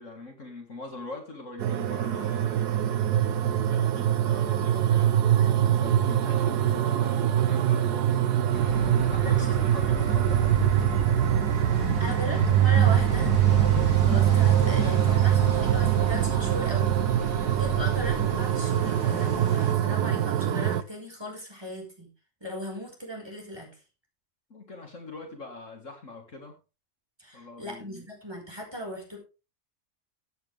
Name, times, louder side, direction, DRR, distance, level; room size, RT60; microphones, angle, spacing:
voice 1, 0.0-5.3 5.8-11.1 11.7-12.0 24.5-26.6 27.3-28.1, left 3 dB, 50° left, 3 dB, 2.2 m, -43 dB
sound 1, 1.6-20.8, right 11 dB, 80° right, 1.3 m, -23 dB
voice 2, 5.4-6.0 9.1-9.7 12.0-13.3 14.0-22.1 22.4-23.7 27.2-29.2, equal, 15° right, 0 dB, 4.9 m, -38 dB
sound 2, 8.5-19.7, equal, 90° left, 2.5 m, -33 dB
14.5 x 8.9 x 3.4 m, 0.30 s
omnidirectional pair, 1.7 m